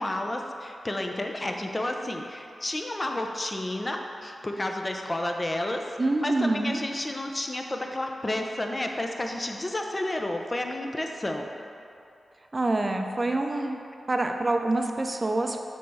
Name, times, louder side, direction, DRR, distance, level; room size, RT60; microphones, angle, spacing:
voice 1, 0.0-5.8 6.2-11.5 13.5-13.7, left 1 dB, 30° left, 3 dB, 0.6 m, -31 dB
voice 2, 6.0-6.8 12.5-13.8 14.1-15.6, right 2 dB, 35° right, 4 dB, 0.5 m, -26 dB
6.3 x 3.5 x 5.4 m, 2.6 s
cardioid pair, 60°, 0 cm